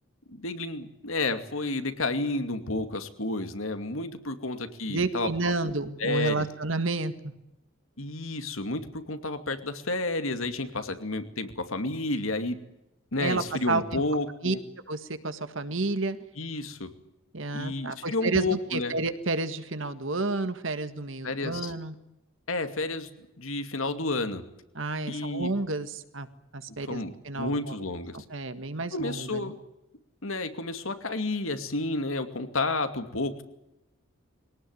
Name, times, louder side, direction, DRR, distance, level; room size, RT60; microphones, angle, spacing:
voice 1, 0.3-5.5 6.0-6.5 8.0-12.6 13.1-14.6 16.4-16.9 17.5-19.0 21.2-21.7 22.5-23.1 23.4-24.4 25.1-25.5 26.9-28.2 28.9-29.6 30.2-33.4, left 2 dB, 85° left, 8 dB, 2.4 m, -31 dB
voice 2, 4.9-7.3 13.2-14.0 14.4-14.6 14.9-16.2 17.3-21.9 24.8-26.3 26.5-27.8 28.1-29.5, right 3 dB, 70° right, 10 dB, 1.8 m, -30 dB
23.0 x 18.5 x 9.6 m, 0.91 s
head